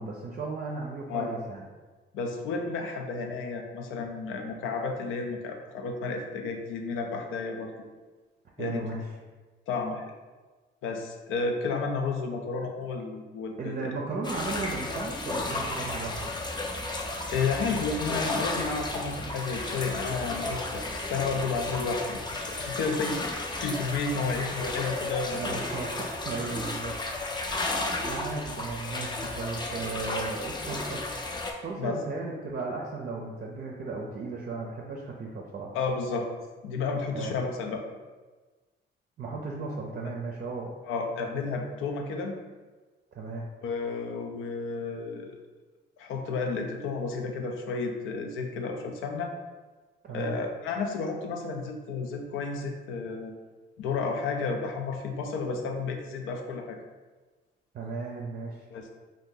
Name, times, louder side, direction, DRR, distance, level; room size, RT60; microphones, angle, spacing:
voice 1, 0.0-1.6 8.6-9.1 13.6-16.3 25.3-26.9 27.4-27.5 28.0-31.0 31.6-35.7 37.1-37.3 39.2-40.7 43.1-43.5 50.0-50.4 57.7-58.7, right 3 dB, 45° right, -1 dB, 0.5 m, -35 dB
voice 2, 2.1-7.7 8.6-8.9 9.7-10.0 10.8-13.9 17.3-25.6 31.8-32.0 35.7-36.3 36.6-37.8 40.8-42.4 43.6-45.4 46.0-49.3 50.1-53.3 53.8-56.8 58.7-58.9, left 4 dB, 90° left, 3 dB, 0.5 m, -32 dB
sound 1, 14.2-31.5, left 2 dB, 20° left, 0.4 m, -33 dB
2.6 x 2.5 x 3.7 m, 1.3 s
cardioid pair, 90°, 20 cm